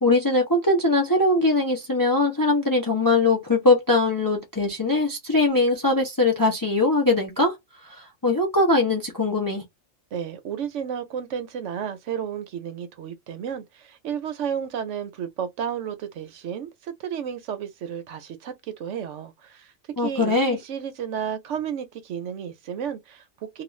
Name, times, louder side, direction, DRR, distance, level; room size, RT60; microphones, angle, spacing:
voice 1, 0.0-7.5 7.9-9.6 20.0-20.6, left 2 dB, 25° left, 0.4 m, -21 dB
voice 2, 10.1-23.6, right 8 dB, 70° right, 0.9 m, -32 dB
2.4 x 2.4 x 3.0 m
omnidirectional pair, 1.3 m